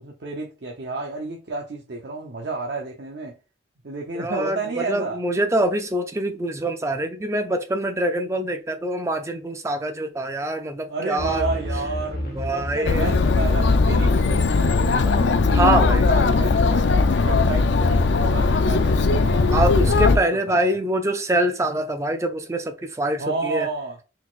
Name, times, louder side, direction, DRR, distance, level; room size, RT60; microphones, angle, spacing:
voice 1, 0.0-3.4 3.8-5.2 10.9-15.2 15.6-19.7 20.1-20.8 23.2-24.0, right 3 dB, 60° right, 0.7 m, -31 dB
voice 2, 4.1-11.5 12.3-13.0 15.5-16.1 19.5-23.7, right 1 dB, 15° right, 0.5 m, -24 dB
sound 1, 11.2-14.6, equal, 50° left, 0.9 m, -32 dB
Chatter, 12.9-20.2, left 3 dB, 65° left, 0.4 m, -19 dB
4.1 x 4.0 x 2.4 m
head